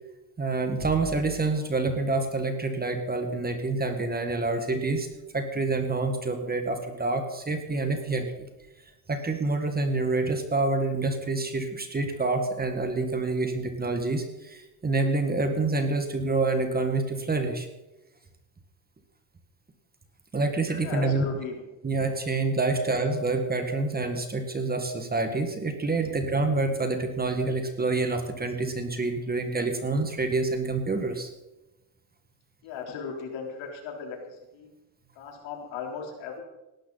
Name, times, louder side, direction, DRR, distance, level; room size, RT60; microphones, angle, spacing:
voice 1, 0.4-5.1 5.3-8.5 9.1-17.7 20.3-21.3 21.8-31.3, right 3 dB, 20° right, 6 dB, 1.9 m, -27 dB
voice 2, 20.8-21.6 32.6-34.7 35.2-36.4, left 6 dB, 65° left, 1 dB, 4.2 m, -37 dB
17.5 x 12.5 x 4.2 m, 1.0 s
supercardioid pair, 110°, 49 cm